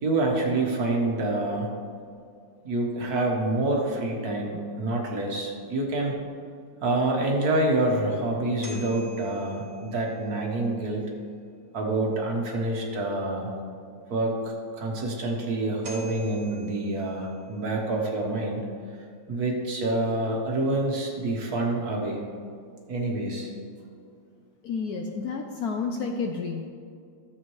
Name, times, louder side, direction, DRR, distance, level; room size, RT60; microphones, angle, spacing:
voice 1, 0.0-1.7 2.6-6.1 6.8-11.0 11.7-13.5 14.1-18.6 19.3-22.2 22.9-23.5, right 2 dB, 55° right, 0 dB, 1.5 m, -27 dB
sound 1, 8.6-10.5 15.4-15.5 15.8-17.7, equal, 40° right, 2.0 m, -47 dB
voice 2, 24.6-26.7, left 5 dB, 70° left, 3 dB, 0.9 m, -30 dB
13.0 x 7.3 x 3.1 m, 2.3 s
omnidirectional pair, 2.1 m